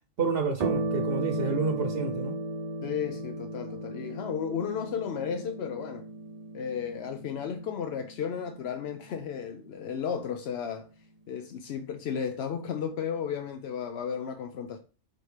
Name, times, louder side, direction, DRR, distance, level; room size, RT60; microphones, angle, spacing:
voice 1, 0.2-2.4, right 5 dB, 75° right, 0.9 m, -29 dB
sound 1, 0.6-9.5, right 2 dB, 45° right, 0.6 m, -35 dB
voice 2, 2.8-6.1 6.5-14.8, left 7 dB, 85° left, 0.9 m, -34 dB
4.8 x 4.3 x 4.9 m
omnidirectional pair, 1.0 m